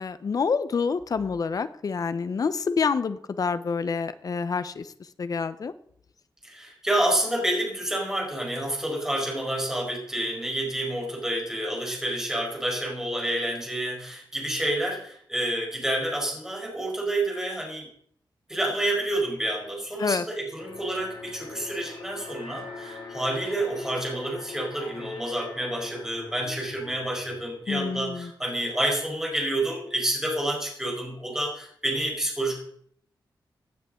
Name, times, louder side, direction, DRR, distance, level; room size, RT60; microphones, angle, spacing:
voice 1, 0.0-4.9 5.2-5.7 20.0-20.2 27.7-28.3, left 5 dB, 50° left, 13 dB, 0.8 m, -27 dB
voice 2, 6.4-17.9 18.5-32.6, right 1 dB, 5° right, -2 dB, 4.7 m, -29 dB
Alarm, 20.6-27.7, left 4 dB, 85° left, 3.1 m, -42 dB
16.5 x 9.4 x 3.8 m, 0.64 s
wide cardioid pair, 140°, 8 cm